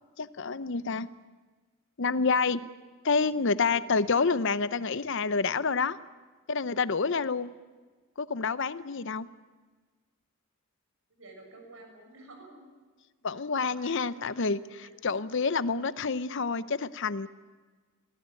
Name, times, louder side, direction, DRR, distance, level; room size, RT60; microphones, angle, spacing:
voice 1, 0.2-1.1 2.0-2.6 3.0-6.0 6.5-7.5 8.2-9.3 13.2-17.3, left 4 dB, 55° left, 15 dB, 0.7 m, -28 dB
voice 2, 11.2-12.6 13.5-14.5 14.8-15.1, right 2 dB, 65° right, 3 dB, 6.5 m, -51 dB
23.0 x 17.0 x 9.1 m, 1.4 s
head